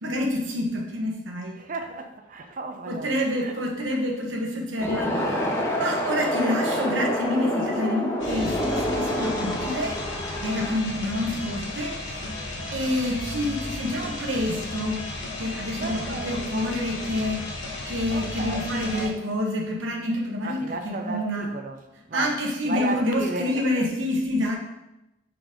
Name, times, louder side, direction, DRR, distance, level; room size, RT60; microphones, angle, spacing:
voice 1, 0.0-1.6 2.9-5.4 5.8-10.0 10.4-12.2 12.7-15.0 15.4-17.4 17.9-21.5 22.1-24.6, left 1 dB, 75° right, 1.0 m, -27 dB
voice 2, 1.5-3.6 3.9-4.0 4.5-4.8 6.2-6.5 15.5-16.7 17.8-19.3 20.4-21.8 22.1-23.8, right 2 dB, 40° right, 0.5 m, -35 dB
sound 1, 4.8-10.8, equal, 15° left, 0.7 m, -27 dB
sound 2, 8.2-19.1, left 2 dB, 70° left, 1.1 m, -34 dB
4.9 x 3.9 x 5.0 m
head